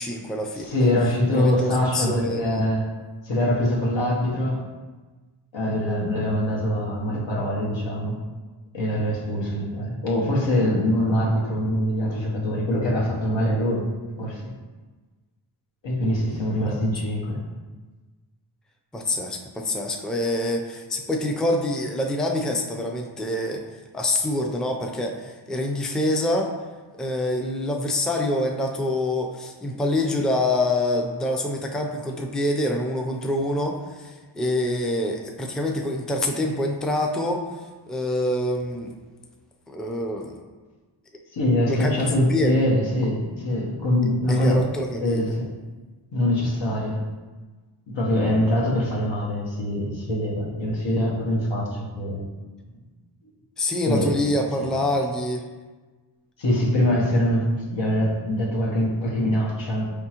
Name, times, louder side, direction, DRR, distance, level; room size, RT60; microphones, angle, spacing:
voice 1, 0.0-0.9 1.3-2.6 16.6-16.8 18.9-26.6 27.0-37.6 37.9-38.9 39.7-40.3 41.6-42.6 44.3-45.3 53.6-55.4, left 1 dB, ahead, 1 dB, 0.4 m, -26 dB
voice 2, 0.6-2.8 3.2-4.6 5.5-8.2 8.7-13.8 14.2-14.5 15.8-17.4 41.3-44.6 45.0-45.5 46.1-47.0 47.9-52.2 53.9-54.1 54.6-54.7 56.4-59.9, left 1 dB, 75° left, -3 dB, 1.1 m, -23 dB
4.8 x 3.6 x 2.9 m, 1.3 s
cardioid pair, 50°, 45 cm